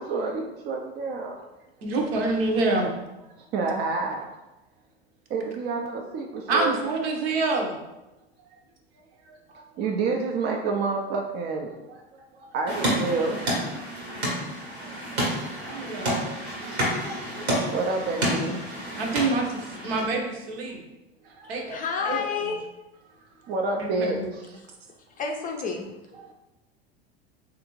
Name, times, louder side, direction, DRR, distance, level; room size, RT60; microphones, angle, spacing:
voice 1, 0.0-1.4 3.4-4.2 5.3-6.7 9.2-13.5 14.5-15.7 16.6-16.8 17.2-17.5 17.7-18.6 21.2-21.5 23.4-24.6 26.2-26.3, right 3 dB, 35° right, 1 dB, 0.4 m, -30 dB
voice 2, 1.8-2.9 6.5-7.8 15.7-16.2 19.0-20.8 21.5-21.8 22.0-22.2 23.8-24.3, right 3 dB, 70° right, 1 dB, 0.8 m, -26 dB
sound 1, 12.7-20.1, right 1 dB, 90° right, 1.3 m, -29 dB
voice 3, 21.4-22.6 25.2-26.3, left 5 dB, 25° left, 2 dB, 0.5 m, -31 dB
3.3 x 2.5 x 3.0 m, 1.0 s
hypercardioid pair, 90°, 31 cm